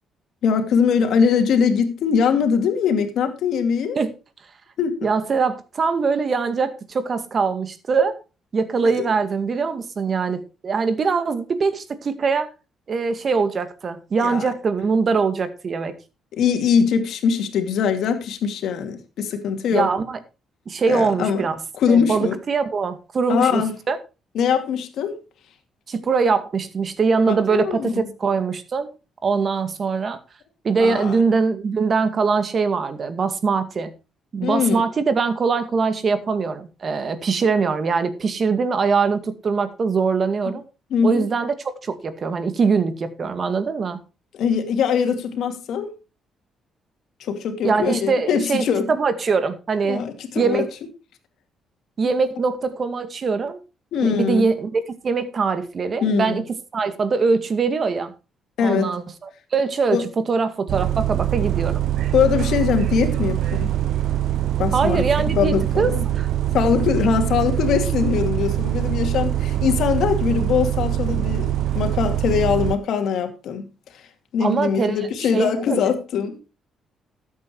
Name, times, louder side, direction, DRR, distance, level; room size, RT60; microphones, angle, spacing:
voice 1, 0.4-4.0 4.8-5.1 8.8-9.1 14.2-14.5 16.3-19.9 20.9-21.5 21.8-22.4 23.3-23.7 24.3-25.2 27.3-28.0 30.8-31.2 34.4-34.8 40.9-41.3 44.3-45.9 47.2-48.9 49.8-50.7 53.9-54.5 56.0-56.4 58.6-59.0 59.9-60.1 62.1-63.7 64.6-66.0 66.5-74.1 74.3-76.4, left 7 dB, 75° left, 2.5 m, -22 dB
voice 2, 5.0-8.2 8.5-12.5 12.9-16.0 19.7-20.2 20.7-21.6 21.9-23.6 23.9-24.0 25.9-28.9 29.2-30.2 30.6-33.9 34.3-40.6 41.0-41.5 41.8-44.0 47.6-50.0 50.4-50.7 52.0-53.6 54.0-56.4 56.7-58.1 58.6-59.0 59.5-61.9 64.7-65.9 66.2-66.3 74.4-75.0 75.3-75.9, right 5 dB, 45° right, 2.0 m, -22 dB
Bus, 60.7-72.8, right 12 dB, 70° right, 0.6 m, -23 dB
13.0 x 8.5 x 4.6 m
cardioid pair, 90°, 0 cm